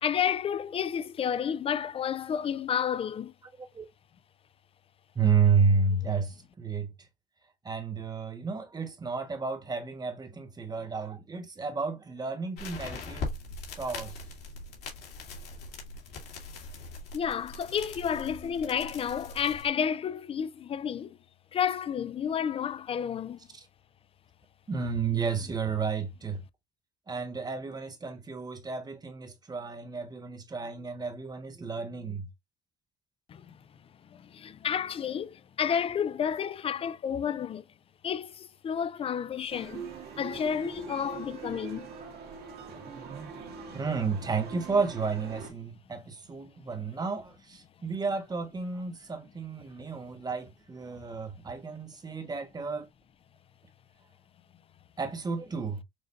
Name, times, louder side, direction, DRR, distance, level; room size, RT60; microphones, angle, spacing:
voice 1, 0.0-3.3 17.1-21.2 21.5-23.4 33.3-33.6 34.1-37.6 38.0-39.9 40.2-41.9, left 8 dB, 35° left, 0.4 m, -31 dB
voice 2, 5.1-6.9 7.6-13.3 13.8-14.1 24.7-26.4 27.1-32.3 43.7-52.8 55.0-55.8, right 5 dB, 25° right, 1.2 m, -31 dB
sound 1, 12.6-19.7, left 3 dB, 70° left, 2.2 m, -41 dB
sound 2, 39.5-45.5, right 5 dB, 70° right, 1.8 m, -42 dB
6.5 x 2.5 x 2.5 m
cardioid pair, 110°, 17 cm